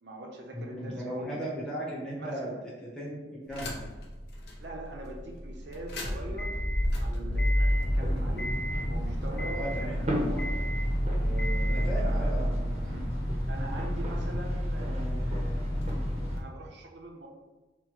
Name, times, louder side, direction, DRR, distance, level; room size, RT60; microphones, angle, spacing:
voice 1, 0.0-1.4 2.2-2.7 4.6-6.6 7.0-8.6 8.9-10.6 11.1-12.3 12.9-15.9 16.1-17.3, right 1 dB, 70° right, 1 dB, 0.7 m, -43 dB
voice 2, 0.5-2.5 2.8-3.9 9.5-10.0 11.7-13.0, right 1 dB, 5° left, -7 dB, 0.8 m, -37 dB
sound 1, 3.4-14.4, equal, 85° right, 1.2 m, -42 dB
sound 2, 3.5-4.0 4.5-4.6 5.7-16.4, equal, 60° left, 0.7 m, -29 dB
sound 3, 7.6-16.4, equal, 35° right, 0.7 m, -40 dB
5.9 x 2.1 x 3.0 m, 1.2 s
head